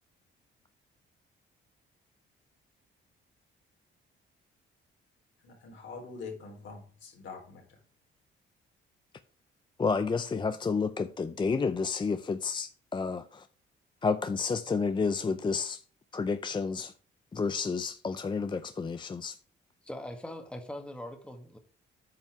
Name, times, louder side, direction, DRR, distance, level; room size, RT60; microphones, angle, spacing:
voice 1, 5.4-7.8, left 4 dB, 70° left, 3.9 m, -44 dB
voice 2, 9.8-13.5 14.0-15.8 16.1-16.9 17.3-19.4, left 4 dB, 25° left, 0.5 m, -30 dB
voice 3, 19.8-21.6, left 1 dB, 5° left, 1.6 m, -41 dB
9.1 x 5.5 x 4.7 m
cardioid pair, 90°, 20 cm